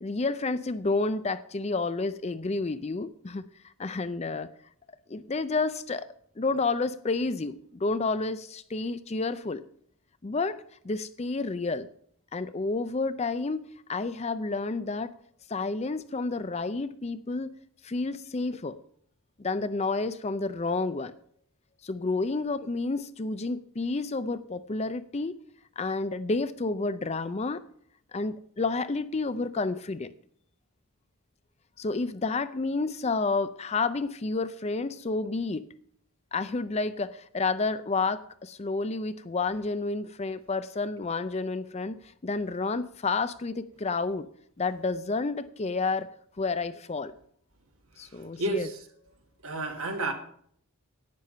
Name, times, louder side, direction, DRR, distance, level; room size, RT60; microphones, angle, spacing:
voice 1, 0.0-3.5 3.8-4.5 5.1-6.1 6.4-9.6 10.2-10.6 10.8-11.9 12.3-13.6 13.9-15.1 15.5-17.5 17.8-18.8 19.4-21.1 21.8-25.4 25.8-27.6 28.1-30.1 31.8-35.7 36.3-42.0 42.2-44.3 44.6-46.1 46.4-47.1 48.0-48.7, left 3 dB, 30° left, 13 dB, 0.4 m, -30 dB
voice 2, 48.4-48.8 49.4-50.1, right 2 dB, 70° right, 4 dB, 1.9 m, -30 dB
10.5 x 9.0 x 5.5 m, 0.63 s
head